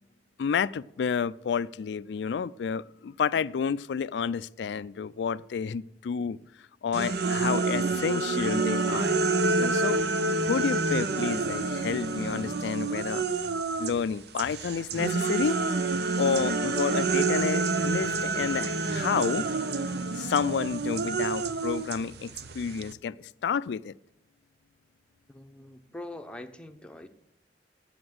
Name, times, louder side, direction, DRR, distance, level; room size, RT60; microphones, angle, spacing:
voice 1, 0.4-6.4 6.8-9.2 9.6-10.0 10.4-13.4 13.8-15.6 16.2-19.5 20.1-23.9, left 6 dB, 75° left, 18 dB, 0.3 m, -30 dB
sound 1, 6.9-14.0 14.4-22.9, right 3 dB, 65° right, 0.7 m, -28 dB
voice 2, 25.3-27.1, left 1 dB, 5° left, 6 dB, 0.8 m, -43 dB
9.8 x 7.9 x 7.7 m, 0.84 s
head